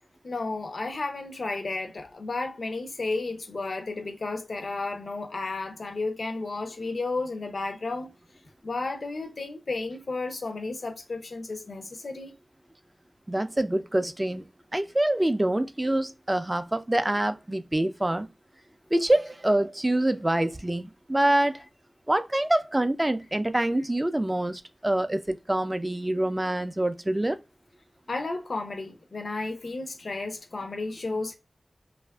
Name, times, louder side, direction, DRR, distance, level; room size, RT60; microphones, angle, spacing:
voice 1, 0.2-8.1 8.6-12.3 28.1-31.3, left 3 dB, 65° left, 0.5 m, -33 dB
voice 2, 13.3-14.5 14.7-18.3 18.9-21.6 22.1-27.4 31.1-31.2, right 1 dB, 20° right, 0.3 m, -26 dB
2.7 x 2.4 x 2.2 m
wide cardioid pair, 75°, 0 cm